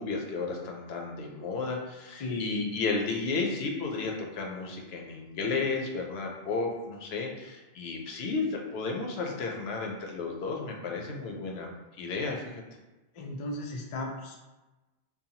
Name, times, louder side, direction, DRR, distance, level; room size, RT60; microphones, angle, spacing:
voice 1, 0.0-11.7 12.0-12.6, left 4 dB, 75° left, 0 dB, 0.8 m, -33 dB
voice 2, 2.2-2.7 13.1-14.4, left 2 dB, 55° left, 0 dB, 0.3 m, -35 dB
2.7 x 2.2 x 2.7 m, 1.1 s
omnidirectional pair, 1.1 m